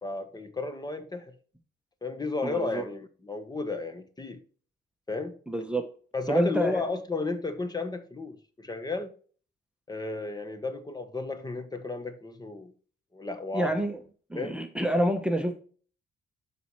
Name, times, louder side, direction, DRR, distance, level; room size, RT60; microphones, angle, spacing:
voice 1, 0.0-1.3 2.0-4.4 5.1-5.4 6.1-9.1 9.9-12.7 13.1-13.7 14.4-14.6, left 3 dB, 20° left, 1.1 m, -33 dB
voice 2, 2.4-2.8 5.5-5.9 6.3-6.8 13.5-14.0 14.3-15.5, right 1 dB, 5° right, 0.9 m, -27 dB
12.0 x 4.2 x 3.1 m
cardioid pair, 90°, 20 cm